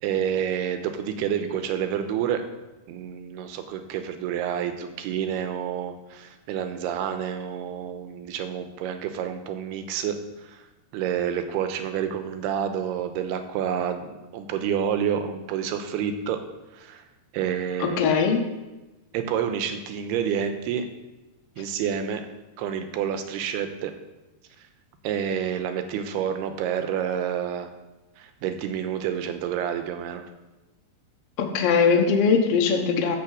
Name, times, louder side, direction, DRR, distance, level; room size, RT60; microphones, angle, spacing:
voice 1, 0.0-2.4 2.9-10.6 10.9-16.4 16.7-17.0 17.3-18.0 19.1-20.8 21.6-22.2 22.6-23.9 25.0-27.7 28.2-30.2, right 8 dB, 85° right, 7 dB, 2.8 m, -29 dB
voice 2, 17.8-18.4 31.4-33.1, left 5 dB, 85° left, 2 dB, 1.3 m, -21 dB
11.5 x 5.0 x 7.4 m, 1.1 s
omnidirectional pair, 4.6 m